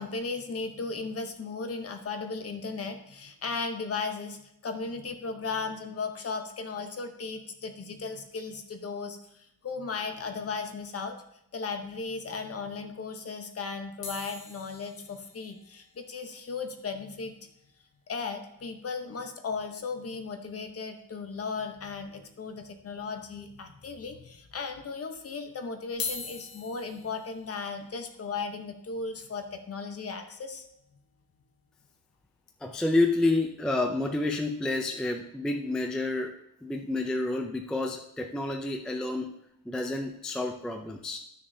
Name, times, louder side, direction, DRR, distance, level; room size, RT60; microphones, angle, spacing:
voice 1, 0.0-11.2 11.5-17.3 18.1-30.7, left 4 dB, 40° left, 6 dB, 0.8 m, -36 dB
sound 1, 14.0-18.4 18.7-18.8 18.9-19.1 19.5-19.6 21.0-21.1 21.8-22.3 22.8-22.9 23.7-23.8 25.8-31.9 32.5-32.7, left 5 dB, 65° left, 1.4 m, -44 dB
voice 2, 32.6-36.3 36.6-39.3 39.7-41.2, left 2 dB, ahead, 3 dB, 0.3 m, -29 dB
12.5 x 6.5 x 2.7 m, 0.80 s
wide cardioid pair, 180°, 38 cm